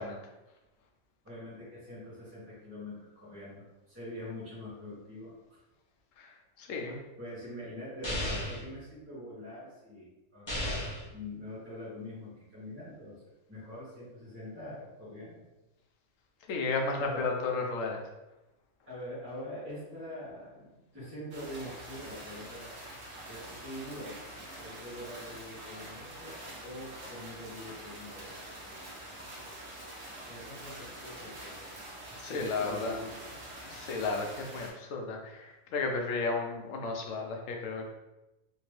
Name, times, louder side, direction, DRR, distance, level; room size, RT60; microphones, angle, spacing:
voice 1, 1.2-5.6 6.8-10.8 11.1-13.2 13.5-15.5 16.6-16.7 17.0-17.3 18.9-22.8 23.3-24.2 24.6-26.4 26.6-28.4 30.2-33.2, left 1 dB, 10° right, -10 dB, 1.1 m, -44 dB
voice 2, 6.6-7.0 16.5-18.0 32.2-33.0 33.7-37.9, left 3 dB, 80° left, 1 dB, 1.0 m, -33 dB
sound 1, 8.0-8.6 10.5-11.1, left 1 dB, 25° left, 0.8 m, -33 dB
sound 2, 21.3-34.7, right 1 dB, 60° right, 1.2 m, -45 dB
3.4 x 2.8 x 3.1 m, 1.0 s
omnidirectional pair, 1.3 m